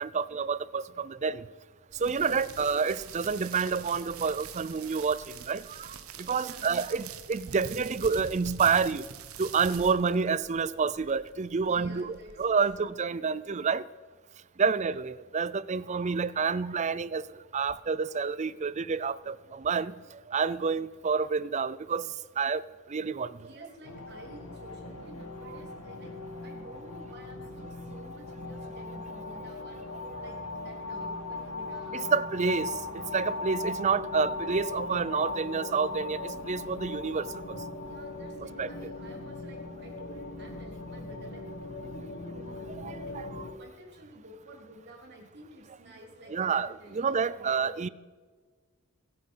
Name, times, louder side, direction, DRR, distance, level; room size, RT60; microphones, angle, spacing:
voice 1, 0.0-1.5 2.0-5.9 6.2-9.1 9.4-13.8 14.6-17.2 17.5-19.9 20.3-22.1 22.4-22.6 22.9-23.3 30.0-30.1 31.9-37.6 38.6-38.7 42.8-43.5 46.3-47.9, right 5 dB, 30° right, 0.4 m, -29 dB
sound 1, 1.9-12.9, right 7 dB, 70° right, 1.1 m, -45 dB
voice 2, 2.0-2.5 6.4-6.6 11.7-12.4 12.8-13.0 14.6-14.9 23.3-26.1 26.4-29.8 30.1-32.2 37.8-41.4 41.8-42.7 43.1-43.2 43.5-47.7, right 1 dB, 50° right, 3.6 m, -51 dB
sound 2, 23.8-43.5, left 3 dB, 80° left, 1.6 m, -39 dB
24.0 x 8.9 x 5.5 m
head